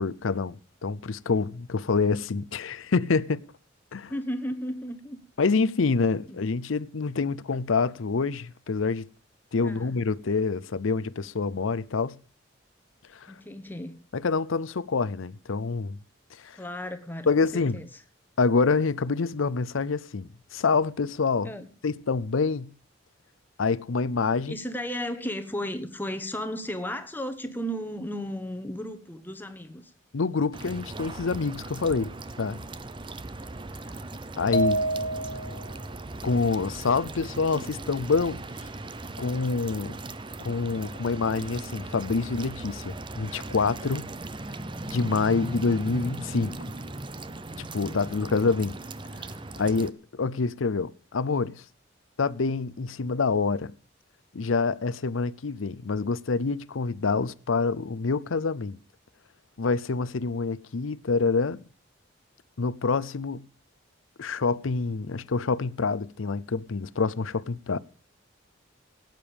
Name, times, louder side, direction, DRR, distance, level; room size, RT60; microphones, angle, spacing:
voice 1, 0.0-3.4 3.9-4.1 5.4-9.1 9.5-12.2 13.1-13.3 14.1-16.0 16.4-16.6 17.3-17.8 18.4-21.5 21.8-22.7 23.6-24.6 30.1-32.6 34.4-34.9 36.2-38.4 39.2-40.0 40.4-44.1 44.9-46.6 47.6-48.7 49.2-49.3 49.6-51.6 52.2-53.7 54.3-58.8 59.6-61.6 62.6-63.5 64.2-67.8, left 4 dB, 80° left, 0.6 m, -26 dB
voice 2, 4.1-5.2 6.3-6.4 9.6-9.9 13.3-14.0 16.5-17.9 21.4-21.7 24.5-29.9 33.2-33.4 33.9-34.1, equal, 10° left, 1.3 m, -34 dB
sound 1, 30.5-49.9, right 2 dB, 25° right, 0.6 m, -38 dB
sound 2, 34.5-35.7, right 1 dB, 45° left, 1.4 m, -27 dB
17.5 x 9.1 x 5.1 m
head